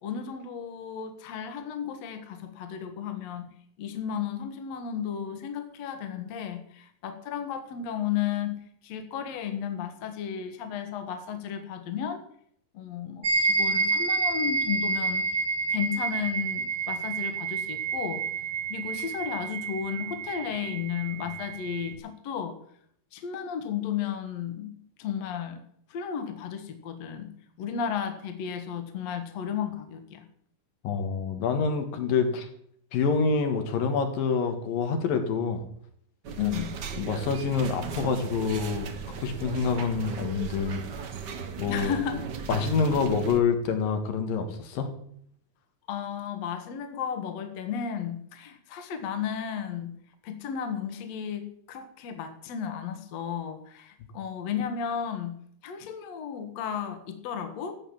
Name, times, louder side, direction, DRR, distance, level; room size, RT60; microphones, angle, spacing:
voice 1, 0.0-3.5 3.8-12.2 12.7-15.3 15.7-18.2 18.7-22.6 23.1-24.7 25.0-25.6 25.9-27.3 27.6-30.3 36.4-36.8 41.7-42.2 45.9-49.9 50.2-55.4 55.6-57.8, left 8 dB, 55° left, 7 dB, 2.3 m, -33 dB
sound 1, 13.2-21.9, right 4 dB, 35° right, 2.1 m, -29 dB
voice 2, 30.8-32.5 32.9-35.6 36.4-36.5 37.0-38.9 39.2-40.8 41.6-41.9 42.5-44.9, left 5 dB, 80° left, 6 dB, 3.5 m, -27 dB
sound 2, 36.2-43.4, right 6 dB, 85° right, 0.9 m, -37 dB
14.5 x 8.2 x 7.3 m, 0.66 s
omnidirectional pair, 4.0 m